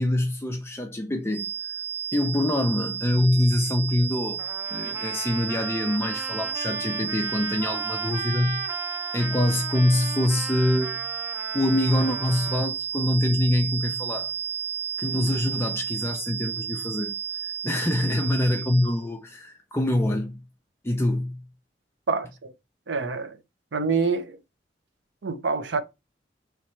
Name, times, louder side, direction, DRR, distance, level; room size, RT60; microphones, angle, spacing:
voice 1, 0.0-1.5 2.1-4.4 4.7-8.6 9.1-11.0 11.5-14.3 15.0-17.1 17.4-20.4 20.8-21.5, left 1 dB, 15° left, 0.4 m, -25 dB
sound 1, 1.3-19.0, right 8 dB, 50° left, 0.9 m, -32 dB
Trumpet, 4.4-12.7, right 1 dB, 15° right, 0.7 m, -37 dB
voice 2, 22.1-22.5 22.9-23.4 23.7-24.4 25.2-25.8, right 4 dB, 80° right, 0.6 m, -26 dB
3.2 x 3.1 x 4.3 m
head